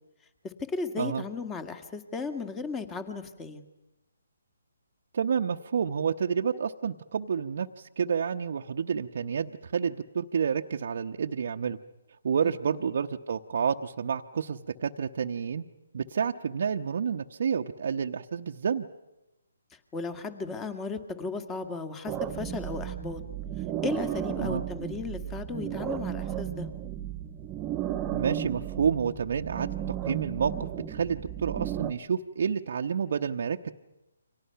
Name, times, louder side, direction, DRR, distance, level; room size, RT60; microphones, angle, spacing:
voice 1, 0.4-3.7 12.4-12.8 19.7-23.2 23.8-26.7, left 4 dB, 15° left, 9 dB, 1.9 m, -35 dB
voice 2, 5.1-11.8 12.2-15.6 15.9-18.9 24.4-24.6 28.1-33.7, right 6 dB, 55° right, 4 dB, 0.9 m, -29 dB
sound 1, 22.1-31.9, right 11 dB, 20° right, 1.1 m, -34 dB
29.5 x 25.0 x 5.8 m, 0.95 s
figure-of-eight pair, 145°, 0 cm